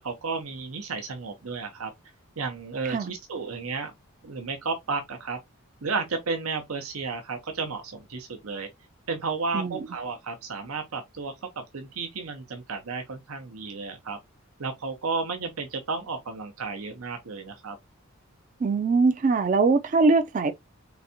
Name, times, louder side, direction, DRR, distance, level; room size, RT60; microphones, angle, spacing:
voice 1, 0.0-1.9 2.4-3.9 4.2-5.4 5.8-8.7 9.1-11.3 11.7-14.2 14.6-17.8, right 4 dB, 90° right, 0.8 m, -32 dB
voice 2, 18.6-20.5, right 4 dB, 35° right, 0.4 m, -22 dB
4.0 x 3.4 x 2.7 m
head